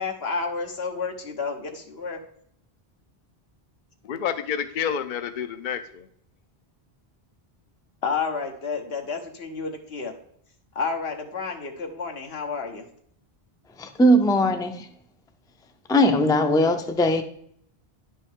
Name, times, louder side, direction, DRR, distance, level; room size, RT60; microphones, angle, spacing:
voice 1, 0.0-2.2 8.0-10.1 10.7-12.9, left 4 dB, 80° left, 3 dB, 1.3 m, -30 dB
voice 2, 4.0-6.1, left 8 dB, 60° left, 10 dB, 0.7 m, -29 dB
voice 3, 13.8-14.8 15.9-17.2, equal, 5° left, 6 dB, 0.4 m, -19 dB
10.5 x 5.4 x 3.6 m, 0.67 s
omnidirectional pair, 1.0 m